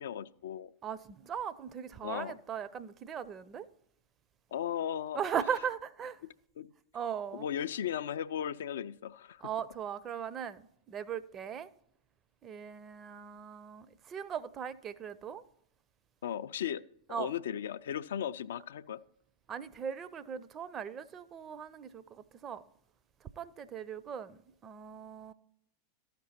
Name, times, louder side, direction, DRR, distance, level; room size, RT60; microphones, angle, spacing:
voice 1, 0.0-0.7 2.0-2.4 4.5-5.2 6.2-6.3 6.6-6.7 7.3-9.5 16.2-16.8 17.1-19.0, left 9 dB, 60° left, 0.3 m, -36 dB
voice 2, 0.8-3.7 5.2-6.2 6.9-7.5 9.4-11.7 12.4-15.4 17.1-17.3 19.5-22.6 23.4-25.3, right 8 dB, 25° right, 0.5 m, -39 dB
13.0 x 5.9 x 4.2 m
figure-of-eight pair, 90°, 0 cm